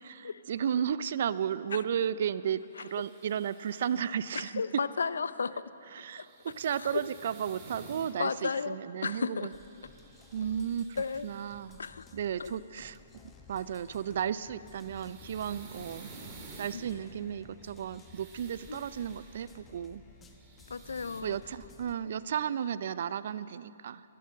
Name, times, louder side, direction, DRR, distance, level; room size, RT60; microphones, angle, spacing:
voice 1, 0.0-4.8 5.9-9.5 10.3-11.8 12.1-13.0 13.5-16.1 16.6-20.0 21.2-24.0, right 8 dB, 60° right, 17 dB, 0.4 m, -34 dB
sound 1, 2.7-4.0 6.0-8.1 9.4-11.7 14.4-16.8 17.6-19.5 20.1-21.2, right 4 dB, 30° right, 2.7 m, -52 dB
voice 2, 4.3-5.7 6.2-6.3 6.8-7.0 8.2-8.8 9.0-9.5 11.0-11.3 11.8-12.0 12.4-12.5 16.7-16.8 18.7-18.8 20.7-21.4 22.1-22.2, left 5 dB, 80° left, 16 dB, 0.5 m, -33 dB
sound 2, 9.5-22.0, left 4 dB, 15° left, 1.1 m, -56 dB
15.5 x 11.5 x 6.5 m, 3.0 s
hypercardioid pair, 135°, 0 cm